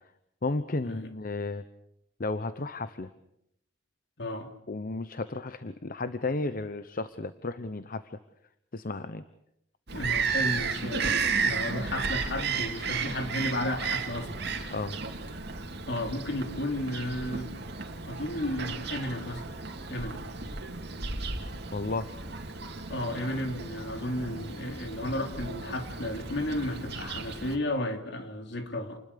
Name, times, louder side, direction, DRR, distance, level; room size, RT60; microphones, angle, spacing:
voice 1, 0.4-1.6 2.2-3.1 4.7-8.2 8.7-9.2 14.7-15.0 21.7-22.1, left 2 dB, 50° left, 12 dB, 0.9 m, -33 dB
voice 2, 4.2-4.5 9.9-11.1 11.4-14.7 15.9-17.5 18.0-19.5 19.9-20.2 22.9-29.0, left 1 dB, 65° left, 5 dB, 3.2 m, -33 dB
Bird vocalization bird call bird song, 9.9-27.6, right 5 dB, 60° right, 2.7 m, -34 dB
29.0 x 21.0 x 6.9 m, 0.78 s
head